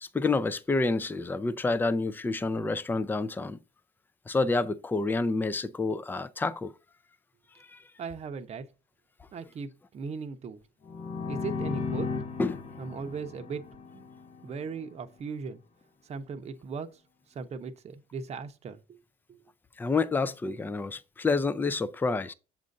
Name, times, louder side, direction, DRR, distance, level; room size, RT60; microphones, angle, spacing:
voice 1, 0.0-3.6 4.3-6.7 7.6-7.8 12.4-12.6 19.8-22.3, left 3 dB, 10° left, 0.4 m, -28 dB
voice 2, 8.0-8.7 9.3-10.6 11.3-12.1 12.8-13.6 13.9-14.1 14.4-15.6 16.0-17.0 17.3-18.8, right 5 dB, 40° right, 0.8 m, -38 dB
sound 1, 10.8-14.6, left 4 dB, 40° left, 0.9 m, -35 dB
7.3 x 2.5 x 5.2 m
cardioid pair, 110°, 17 cm